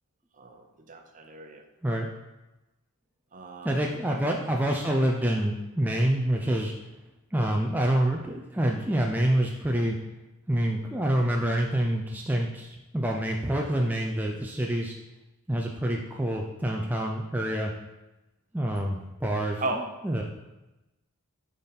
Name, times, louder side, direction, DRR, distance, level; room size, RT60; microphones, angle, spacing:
voice 1, 0.4-1.6 3.3-4.2 19.6-19.9, right 2 dB, 35° right, 4 dB, 0.7 m, -36 dB
voice 2, 3.6-6.7 7.3-10.0 10.5-14.9 15.5-17.7 18.5-19.6 20.0-20.2, right 1 dB, 10° right, 0 dB, 0.5 m, -27 dB
8.8 x 4.0 x 4.2 m, 1.0 s
head